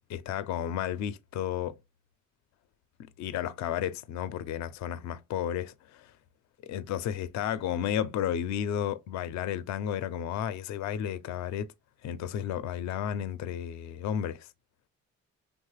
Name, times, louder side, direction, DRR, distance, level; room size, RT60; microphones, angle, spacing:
voice 1, 0.1-1.8 3.2-6.1 6.6-11.7 12.0-14.5, left 10 dB, 65° left, 0.4 m, -32 dB
3.0 x 2.1 x 3.1 m
cardioid pair, 90°, 30 cm